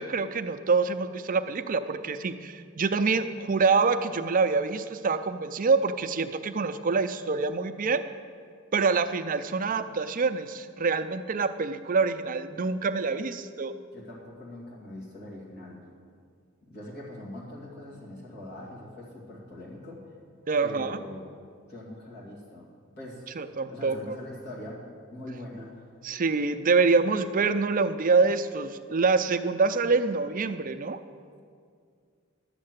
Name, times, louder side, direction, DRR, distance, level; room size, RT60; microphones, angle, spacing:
voice 1, 0.0-8.0 8.7-13.7 20.5-21.0 23.4-24.2 26.0-31.0, right 4 dB, 40° right, 9 dB, 0.5 m, -26 dB
voice 2, 13.9-15.8 16.7-20.0 20.6-21.3 21.7-22.7 23.0-23.2 23.6-25.8, left 1 dB, 55° left, -5 dB, 2.6 m, -42 dB
11.5 x 6.6 x 8.0 m, 2.2 s
head